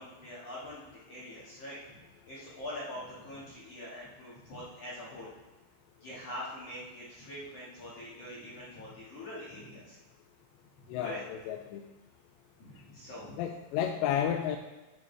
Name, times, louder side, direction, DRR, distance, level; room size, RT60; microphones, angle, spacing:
voice 1, 0.0-1.8 2.3-5.3 6.0-10.0 10.9-11.2 12.6-13.3, left 1 dB, 50° left, -8 dB, 2.2 m, -44 dB
voice 2, 10.9-11.8 13.4-14.6, left 9 dB, 85° left, 4 dB, 2.8 m, -32 dB
9.9 x 9.0 x 3.4 m, 1.1 s
omnidirectional pair, 5.0 m